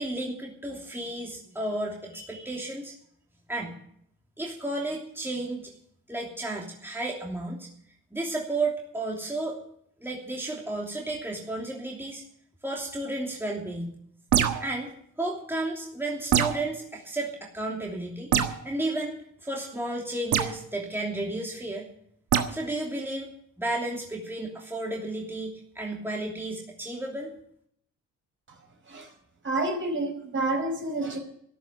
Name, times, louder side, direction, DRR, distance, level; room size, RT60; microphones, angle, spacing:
voice 1, 0.0-2.9 3.5-3.7 4.4-5.7 6.1-7.7 8.1-9.6 10.0-12.2 12.6-13.9 14.6-14.9 15.2-18.3 18.6-21.9 22.5-23.3 23.6-27.3, right 2 dB, 5° right, -1 dB, 2.9 m, -32 dB
sound 1, 14.3-14.8 16.3-16.7 18.3-18.6 20.3-20.6 22.3-22.5, right 9 dB, 75° right, 1.5 m, -24 dB
voice 2, 29.4-31.2, right 2 dB, 40° right, 4 dB, 5.1 m, -29 dB
13.5 x 11.5 x 7.0 m, 0.70 s
cardioid pair, 90°, 30 cm